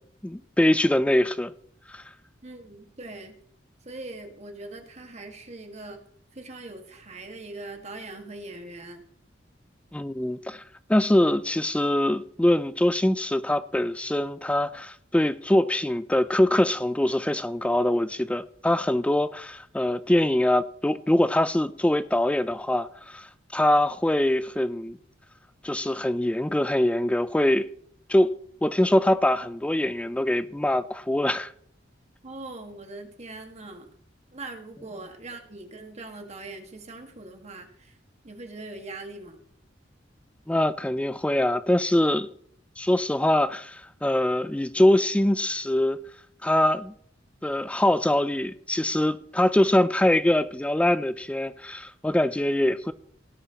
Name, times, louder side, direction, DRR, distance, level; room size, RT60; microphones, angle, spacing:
voice 1, 0.2-1.5 1.9-2.0 9.9-10.6 10.9-25.0 25.6-27.7 28.1-28.3 28.6-31.5 40.5-42.3 42.8-46.0 46.4-46.9 47.4-52.9, left 1 dB, 5° left, 0.3 m, -23 dB
voice 2, 2.4-3.3 3.8-6.0 6.3-9.0 32.2-33.9 34.3-38.0 38.2-39.4, right 2 dB, 35° right, 1.7 m, -41 dB
17.5 x 10.0 x 2.9 m
head